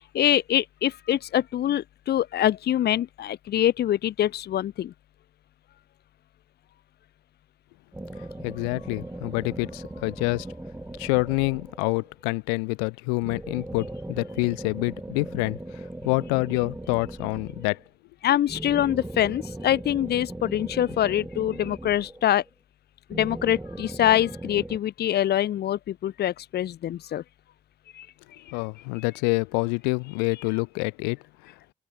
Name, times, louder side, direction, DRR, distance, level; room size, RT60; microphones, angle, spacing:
voice 1, 0.0-4.9 18.2-22.4 23.1-27.2 27.9-28.1 29.0-29.1, left 12 dB, 60° left, 1.9 m, -24 dB
sound 1, 7.9-12.1 13.2-17.9 18.5-22.5 23.1-24.8, right 1 dB, 10° right, 3.8 m, -39 dB
voice 2, 8.2-10.5 11.0-17.8 28.5-31.7, left 40 dB or more, 80° left, 2.1 m, -27 dB
hypercardioid pair, 50°, 18 cm